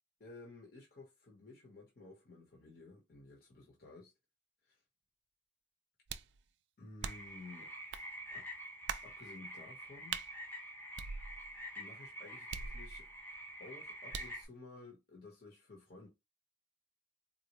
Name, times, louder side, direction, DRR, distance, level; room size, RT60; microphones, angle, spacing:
voice 1, 0.2-4.1 4.6-4.8 6.8-7.7 8.3-8.4 9.0-10.2 11.8-13.1 13.6-16.1, left 3 dB, 50° left, 1.0 m, -54 dB
sound 1, 6.1-6.4 7.0-7.4 7.9-8.1 8.9-9.1 10.1-10.3 11.0-11.6 12.5-13.2 14.1-14.4, right 7 dB, 65° right, 0.3 m, -42 dB
sound 2, 7.0-14.5, equal, 10° left, 0.8 m, -47 dB
4.0 x 2.1 x 3.0 m
head